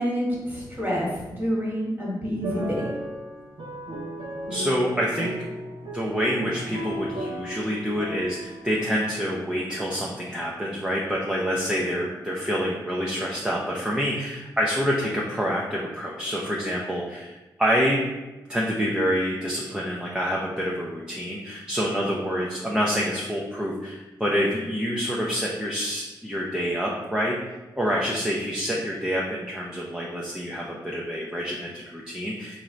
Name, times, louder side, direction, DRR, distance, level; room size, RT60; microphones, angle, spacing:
voice 1, 0.0-2.8, equal, 25° right, -4 dB, 1.4 m, -28 dB
sound 1, 2.4-8.8, right 1 dB, 85° right, 0.7 m, -35 dB
voice 2, 4.5-5.3 5.9-18.0 18.5-32.6, equal, 10° right, -4 dB, 0.5 m, -27 dB
4.6 x 2.6 x 3.1 m, 1.1 s
wide cardioid pair, 100°, 8 cm